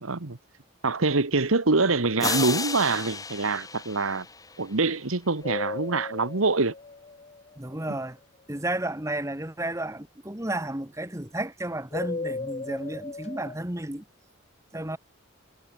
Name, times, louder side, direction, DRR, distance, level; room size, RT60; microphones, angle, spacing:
voice 1, 0.0-0.4 0.8-4.2 4.6-6.7 7.9-8.0, right 3 dB, 85° right, 1.5 m, -25 dB
sound 1, 2.2-5.1, left 4 dB, 15° left, 2.1 m, -33 dB
sound 2, 5.4-7.9 11.9-13.5, left 3 dB, 35° left, 0.5 m, -36 dB
voice 2, 7.6-8.2 8.5-14.0 14.7-15.0, right 1 dB, 15° right, 1.6 m, -32 dB
head